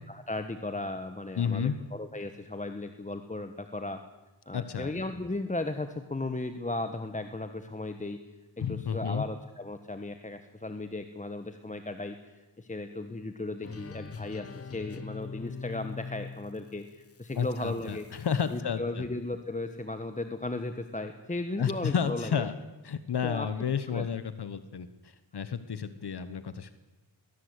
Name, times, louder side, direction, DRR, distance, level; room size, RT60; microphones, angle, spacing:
voice 1, 0.1-4.0 4.5-8.2 8.6-18.1 18.5-22.4 23.2-23.5 23.9-24.1, left 2 dB, 15° left, 8 dB, 1.2 m, -36 dB
voice 2, 1.4-1.8 4.5-4.9 8.6-9.3 17.3-19.0 21.6-22.5 22.8-26.7, left 7 dB, 65° left, 12 dB, 1.2 m, -31 dB
sound 1, 13.6-18.6, left 5 dB, 35° left, 0.8 m, -43 dB
21.5 x 18.0 x 8.2 m, 1.1 s
wide cardioid pair, 120°, 42 cm